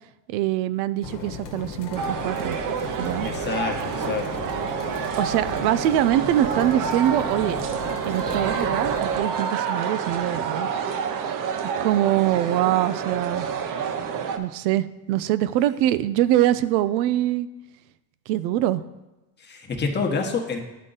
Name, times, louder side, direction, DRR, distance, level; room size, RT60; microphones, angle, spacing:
voice 1, 0.3-2.6 3.0-3.3 5.2-7.6 8.0-10.7 11.8-13.5 14.4-17.5 18.3-18.8, right 13 dB, 85° right, 14 dB, 0.6 m, -23 dB
sound 1, 1.0-9.2, left 5 dB, 55° left, 1.2 m, -36 dB
sound 2, 2.0-14.4, right 7 dB, 40° right, 0.7 m, -28 dB
voice 2, 3.2-4.5 19.4-20.6, left 4 dB, 20° left, 2 dB, 1.1 m, -28 dB
11.0 x 3.7 x 3.9 m, 1.0 s
supercardioid pair, 110°, 49 cm